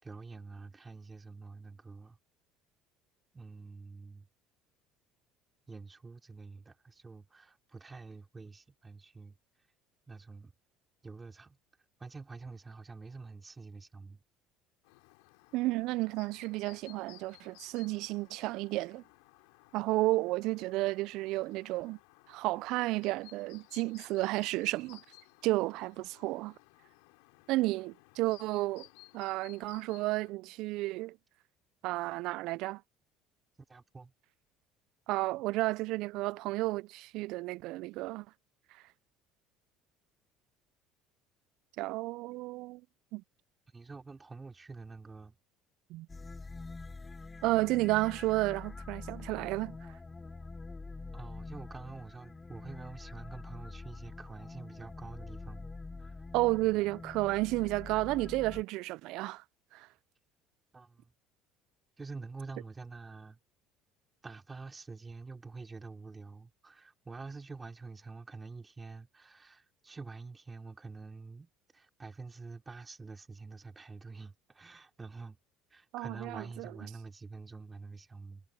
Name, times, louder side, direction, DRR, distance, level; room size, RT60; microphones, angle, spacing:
voice 1, 0.0-2.2 3.3-4.3 5.7-9.4 10.1-10.5 11.0-11.6 12.0-14.2 33.7-34.1 43.7-45.4 51.1-55.7 56.0-56.2 60.7-61.1 62.0-63.4 64.2-75.4 75.7-78.4, right 4 dB, 25° right, 4.7 m, -47 dB
Chirp tweet, 14.8-30.3, left 31 dB, 80° left, 4.9 m, -59 dB
voice 2, 15.5-19.0 19.7-22.0 22.3-25.0 25.4-26.5 27.5-28.9 29.1-31.2 31.8-32.8 35.1-38.3 41.8-42.8 43.1-43.2 45.9-46.1 47.4-49.8 56.3-59.4 59.7-59.9 75.9-76.7, right 20 dB, 70° right, 0.4 m, -32 dB
sound 1, 46.1-58.6, left 3 dB, 20° left, 5.6 m, -46 dB
hypercardioid pair, 70°, 0 cm